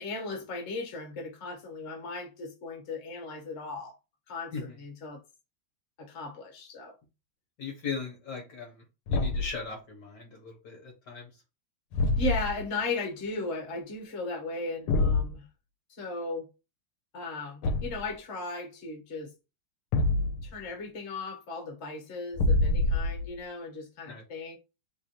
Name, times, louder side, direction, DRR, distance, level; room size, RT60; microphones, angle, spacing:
voice 1, 0.0-3.9 4.3-5.2 6.0-6.9 12.2-15.4 15.9-16.5 17.1-19.3 20.4-24.6, left 2 dB, 40° left, 1.1 m, -36 dB
voice 2, 7.6-11.3 24.1-24.2, left 5 dB, 60° left, 1.3 m, -38 dB
Thump thud, 9.1-9.6 11.9-12.6 14.9-15.3 17.6-18.1 19.9-20.6 22.3-23.3, left 2 dB, 90° left, 1.5 m, -26 dB
3.3 x 2.5 x 4.2 m
omnidirectional pair, 2.3 m